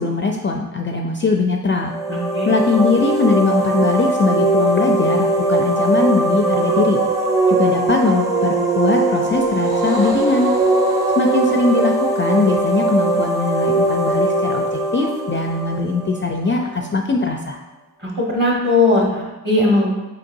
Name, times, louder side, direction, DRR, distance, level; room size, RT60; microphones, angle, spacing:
voice 1, 0.0-1.9 2.5-7.0 7.5-10.5 11.2-17.6, left 4 dB, 30° left, 2 dB, 0.4 m, -20 dB
sound 1, 1.8-16.5, right 2 dB, 10° right, 0.7 m, -20 dB
voice 2, 2.1-2.5 18.0-19.9, left 2 dB, 25° right, -3 dB, 1.5 m, -18 dB
sound 2, 9.2-13.8, right 1 dB, 55° right, 1.5 m, -36 dB
5.2 x 3.8 x 2.6 m, 1.1 s
cardioid pair, 65°, 38 cm